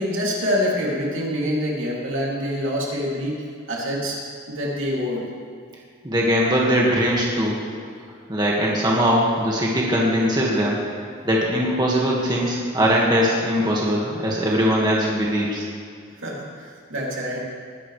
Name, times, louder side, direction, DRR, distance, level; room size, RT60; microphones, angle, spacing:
voice 1, 0.0-3.4 3.7-4.2 4.5-5.2 16.2-17.4, equal, 80° right, -3 dB, 2.8 m, -25 dB
voice 2, 6.0-7.6 8.3-10.8 11.2-15.6, equal, 20° right, -4 dB, 1.8 m, -21 dB
21.0 x 11.0 x 3.3 m, 2.2 s
head